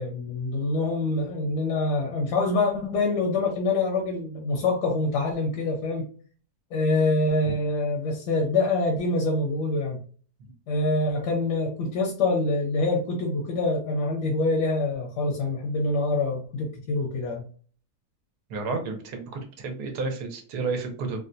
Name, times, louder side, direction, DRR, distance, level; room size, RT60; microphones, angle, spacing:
voice 1, 0.0-6.1 6.7-10.0 10.7-17.4, left 2 dB, 80° left, -1 dB, 1.3 m, -25 dB
voice 2, 18.5-21.2, right 4 dB, 75° right, 4 dB, 1.3 m, -31 dB
3.7 x 2.2 x 2.6 m, 0.43 s
omnidirectional pair, 1.8 m